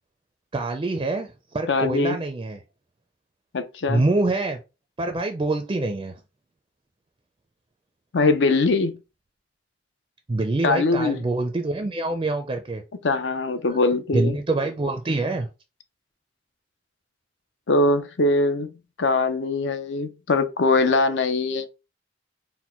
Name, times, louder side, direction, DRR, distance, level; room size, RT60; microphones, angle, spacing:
voice 1, 0.5-2.6 3.9-4.6 5.0-6.2 10.3-12.8 13.7-13.8 14.1-15.5, right 2 dB, 25° right, 0.4 m, -25 dB
voice 2, 1.7-2.2 3.5-4.0 8.1-9.0 10.6-11.2 13.0-14.4 17.7-18.7 19.0-21.7, left 3 dB, 70° left, 0.6 m, -22 dB
4.3 x 2.2 x 4.3 m
head